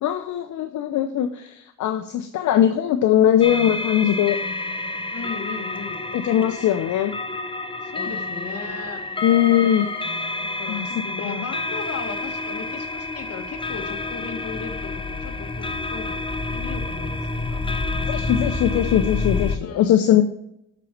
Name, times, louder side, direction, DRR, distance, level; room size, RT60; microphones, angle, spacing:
voice 1, 0.0-4.4 6.1-7.1 9.2-9.9 10.7-10.9 11.2-11.4 18.1-20.2, left 11 dB, 70° left, 8 dB, 0.7 m, -20 dB
sound 1, 3.4-19.6, left 3 dB, 15° left, 0.9 m, -29 dB
voice 2, 5.1-6.0 7.8-9.0 10.4-16.2 16.5-17.6 19.6-20.0, left 5 dB, 50° left, 4 dB, 1.8 m, -36 dB
8.3 x 5.2 x 5.8 m, 0.78 s
cardioid pair, 90°, 30 cm